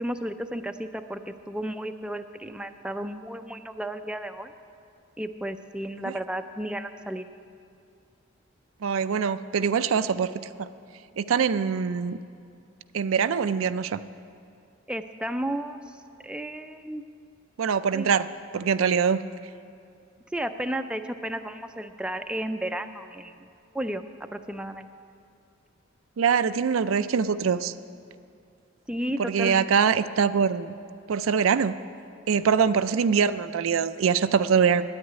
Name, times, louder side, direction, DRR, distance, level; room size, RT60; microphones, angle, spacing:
voice 1, 0.0-4.5 5.2-7.2 14.9-15.8 16.2-17.0 17.9-18.1 20.3-23.5 23.7-24.0 24.3-24.9 28.9-29.6, right 1 dB, 5° right, 7 dB, 0.4 m, -33 dB
voice 2, 8.8-10.3 10.6-10.7 11.2-12.2 12.9-14.0 17.6-18.3 18.5-19.2 26.2-27.7 29.2-30.7 31.1-31.8 32.3-34.8, right 6 dB, 90° right, 12 dB, 0.4 m, -23 dB
9.6 x 9.0 x 9.8 m, 2.5 s
head